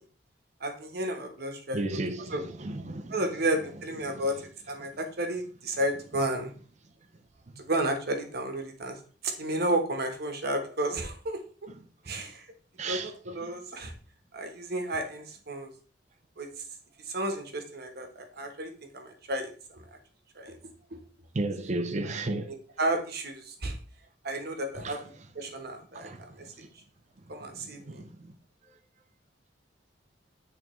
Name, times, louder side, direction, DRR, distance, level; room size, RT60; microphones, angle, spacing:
voice 1, 0.6-1.8 2.2-2.4 3.1-6.5 7.6-9.0 9.2-11.4 12.0-12.5 12.9-13.9 14.3-15.7 16.4-16.6 17.0-20.0 20.3-20.6 20.9-21.0 22.0-22.1 22.4-23.8 24.2-25.0 25.3-26.7 27.3-28.0, right 1 dB, 60° right, 1.2 m, -32 dB
voice 2, 1.7-3.2 4.0-4.2 11.7-11.8 12.1-12.2 12.8-13.1 13.4-13.5 21.3-22.6 24.8-25.0 25.9-26.5 27.4-28.3, right 2 dB, 40° right, 0.6 m, -34 dB
8.9 x 3.6 x 3.1 m
head